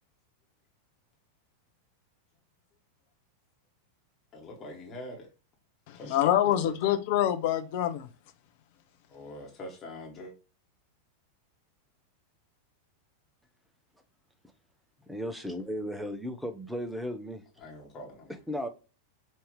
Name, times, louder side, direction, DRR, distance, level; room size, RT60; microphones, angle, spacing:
voice 1, 4.3-5.3 5.9-6.3 6.6-6.7 9.1-10.3 17.6-18.3, left 1 dB, 25° left, 1.4 m, -43 dB
voice 2, 5.9-8.1, left 11 dB, 50° left, 0.6 m, -26 dB
voice 3, 15.1-17.4 18.5-18.7, equal, ahead, 0.7 m, -35 dB
5.3 x 2.8 x 3.2 m
figure-of-eight pair, 90°, 0 cm